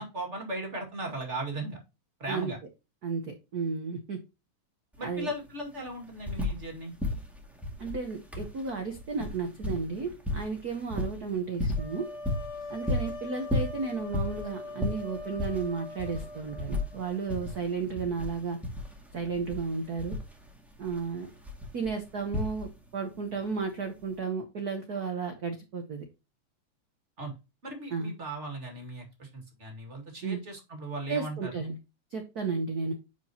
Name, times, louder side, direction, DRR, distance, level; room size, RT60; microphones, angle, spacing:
voice 1, 0.0-1.8 2.2-2.6 5.0-6.9 27.2-27.3 27.6-31.5, right 2 dB, 25° right, 2 dB, 2.0 m, -37 dB
voice 2, 3.0-4.2 5.0-5.3 7.8-12.1 12.7-18.6 19.1-20.2 20.8-21.3 21.7-26.0 27.9-28.1 30.2-30.4 31.1-31.8 32.1-32.9, right 5 dB, 80° right, 5 dB, 0.8 m, -33 dB
sound 1, 4.9-5.0 5.3-6.7 7.0-23.0 24.0-24.1, left 2 dB, ahead, 1.3 m, -35 dB
sound 2, 11.8-17.6, left 2 dB, 45° left, 5.3 m, -42 dB
10.0 x 4.9 x 2.9 m, 0.27 s
omnidirectional pair, 3.3 m